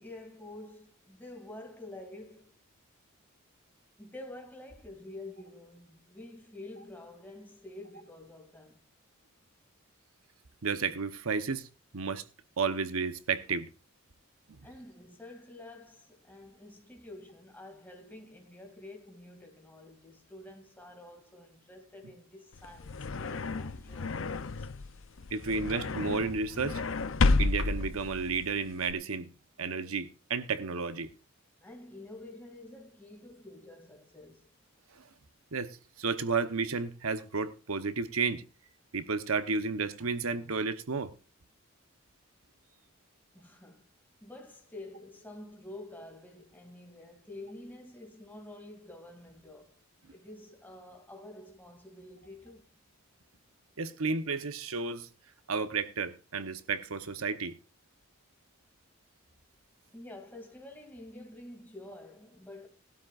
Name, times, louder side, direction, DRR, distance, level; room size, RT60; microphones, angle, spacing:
voice 1, 0.0-2.5 4.0-8.8 14.6-25.0 31.6-34.5 43.3-43.9 44.2-49.7 50.1-52.7 59.9-62.7, left 2 dB, 10° left, 2.5 m, -48 dB
voice 2, 10.6-11.7 11.9-12.2 12.6-13.7 25.3-26.8 27.4-29.3 29.6-31.1 35.0-35.1 35.5-38.4 38.9-41.1 53.8-55.1 55.5-57.6, right 4 dB, 75° right, 0.9 m, -32 dB
sound 1, 22.5-28.9, left 3 dB, 60° left, 0.6 m, -31 dB
18.5 x 12.5 x 2.5 m
head